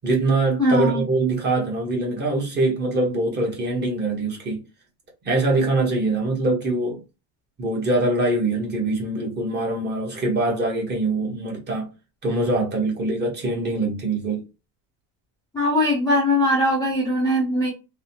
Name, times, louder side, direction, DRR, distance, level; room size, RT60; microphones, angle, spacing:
voice 1, 0.0-4.6 5.2-7.0 7.6-11.9 12.2-14.4, right 2 dB, 25° right, 0.9 m, -23 dB
voice 2, 0.6-1.0 15.5-17.7, left 1 dB, 10° left, 0.5 m, -20 dB
3.2 x 2.0 x 2.7 m
cardioid pair, 160°, 43 cm